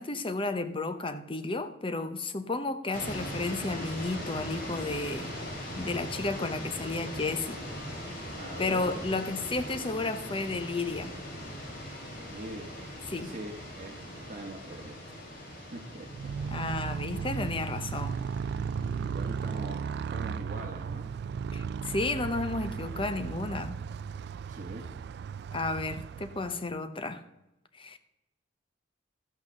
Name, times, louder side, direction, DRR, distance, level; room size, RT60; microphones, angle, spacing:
voice 1, 0.0-5.3 5.8-7.6 8.6-11.1 13.1-13.3 16.5-18.2 21.5-23.8 25.5-27.2 27.8-28.0, left 3 dB, 30° left, 0.8 m, -32 dB
sound 1, 2.9-20.2, equal, 50° left, 4.9 m, -41 dB
voice 2, 8.4-9.2 12.1-12.7 13.2-14.0 14.3-15.2 15.5-17.1 18.6-21.1 24.5-24.9, right 1 dB, 45° right, 1.3 m, -43 dB
Motorcycle, 16.1-26.8, right 6 dB, 60° right, 0.3 m, -36 dB
13.5 x 6.2 x 6.4 m
head